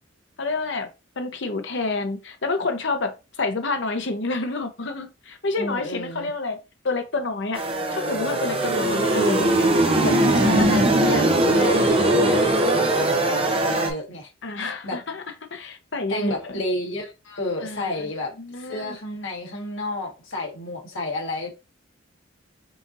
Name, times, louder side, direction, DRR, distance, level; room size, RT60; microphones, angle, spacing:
voice 1, 0.4-0.9 1.2-6.6 6.8-7.6 7.9-9.5 10.0-10.1 10.6-10.7 11.2-11.6 14.4-15.2 15.5-16.5 17.6-18.1 18.4-19.0, left 3 dB, 60° left, 0.8 m, -28 dB
voice 2, 5.6-6.3 10.3-11.3 11.5-14.3 14.8-15.0 16.1-18.3 18.7-21.5, left 1 dB, 80° left, 1.6 m, -31 dB
sound 1, 7.5-13.9, right 1 dB, 30° right, 0.8 m, -20 dB
5.6 x 2.8 x 2.6 m
head